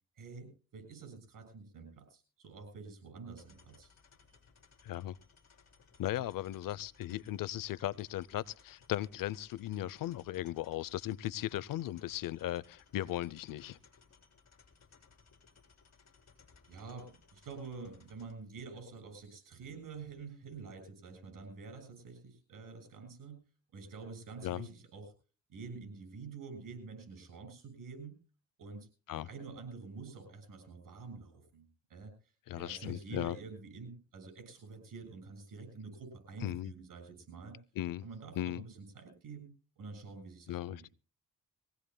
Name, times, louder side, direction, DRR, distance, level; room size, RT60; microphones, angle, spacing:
voice 1, 0.2-3.9 16.7-23.4 23.7-25.1 25.5-28.2 28.6-28.9 29.1-32.1 32.5-37.6 38.0-40.9, right 4 dB, 75° right, 7.1 m, -48 dB
sound 1, 3.4-18.3, left 5 dB, 55° left, 3.7 m, -64 dB
voice 2, 4.8-5.2 6.0-13.8 24.4-24.7 29.1-29.3 32.5-33.4 36.4-36.7 37.8-38.0 38.4-38.6 40.5-40.9, left 13 dB, 80° left, 0.6 m, -37 dB
23.0 x 17.0 x 2.2 m
cardioid pair, 90°, 33 cm